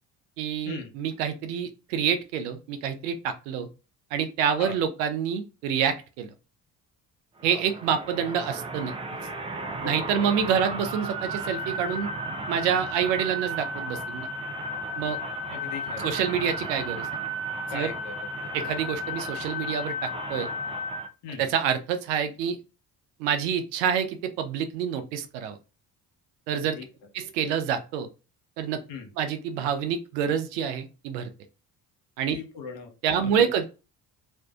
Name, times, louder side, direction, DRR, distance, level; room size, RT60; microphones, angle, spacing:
voice 1, 0.4-3.7 4.1-6.3 7.4-8.9 9.8-12.1 12.5-14.3 15.0-15.2 16.0-17.1 17.7-17.9 18.5-20.5 21.4-22.6 23.2-25.6 26.5-26.8 27.1-28.1 28.6-28.8 29.2-31.3 32.2-32.4 33.0-33.6, right 8 dB, 85° right, 9 dB, 0.6 m, -27 dB
sound 1, 7.4-21.1, right 1 dB, 15° right, 0.4 m, -34 dB
voice 2, 9.8-10.3 15.5-16.1 17.7-18.5 21.2-21.5 26.5-26.9 28.9-29.1 32.3-33.3, left 5 dB, 60° left, 3 dB, 0.9 m, -39 dB
2.5 x 2.1 x 2.3 m, 0.31 s
hypercardioid pair, 55°, 48 cm